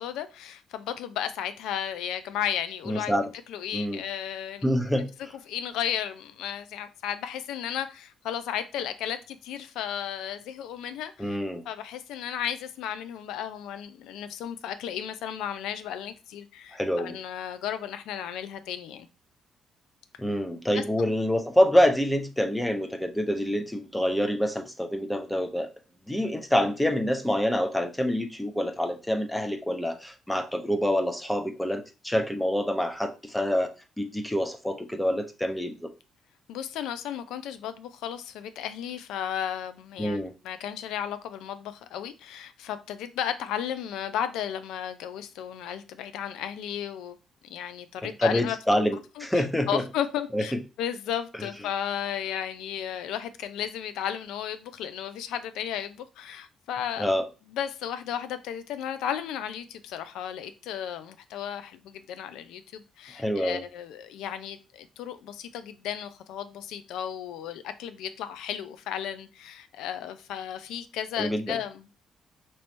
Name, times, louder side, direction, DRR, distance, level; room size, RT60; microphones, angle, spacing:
voice 1, 0.0-3.1 3.5-4.7 5.5-11.4 11.7-19.1 20.7-21.1 36.5-40.2 40.4-47.2 47.5-48.8 49.2-57.1 57.5-71.9, left 9 dB, 90° left, 0.4 m, -34 dB
voice 2, 2.9-3.3 3.7-4.0 4.6-5.1 11.2-11.6 16.7-17.2 20.2-25.7 26.1-33.7 34.0-35.9 40.0-40.3 48.2-49.8 50.3-50.4 51.4-51.5 57.0-57.3 63.2-63.6 71.2-71.6, equal, 5° left, 0.7 m, -26 dB
3.1 x 3.0 x 4.3 m
cardioid pair, 90°, 0 cm